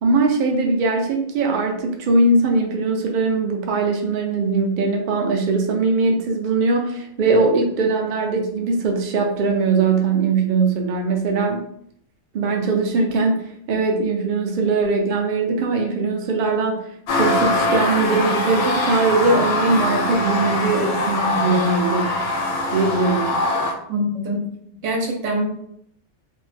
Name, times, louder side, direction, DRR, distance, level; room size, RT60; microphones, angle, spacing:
voice 1, 0.0-11.7 12.3-16.8 17.1-22.2 22.7-23.3, right 3 dB, 60° right, 2 dB, 0.5 m, -20 dB
sound 1, 17.1-23.7, left 2 dB, 85° left, 1.0 m, -22 dB
voice 2, 23.9-24.4 24.8-25.5, equal, 80° right, 1 dB, 1.0 m, -23 dB
2.6 x 2.2 x 3.2 m, 0.70 s
omnidirectional pair, 1.3 m